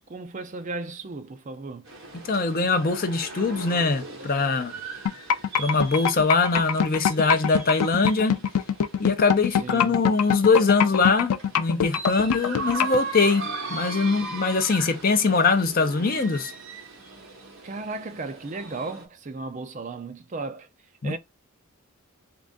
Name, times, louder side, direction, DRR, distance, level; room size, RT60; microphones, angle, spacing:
voice 1, 0.0-1.9 4.8-5.0 9.5-10.0 17.6-20.7 21.0-21.2, right 3 dB, 35° right, 0.4 m, -35 dB
sound 1, 1.9-19.1, right 3 dB, 60° right, 1.2 m, -39 dB
voice 2, 2.1-4.7 5.6-8.4 9.0-16.5 21.0-21.2, left 4 dB, 40° left, 0.5 m, -22 dB
sound 2, 5.1-13.0, left 8 dB, 90° left, 0.4 m, -23 dB
3.7 x 2.5 x 3.6 m
head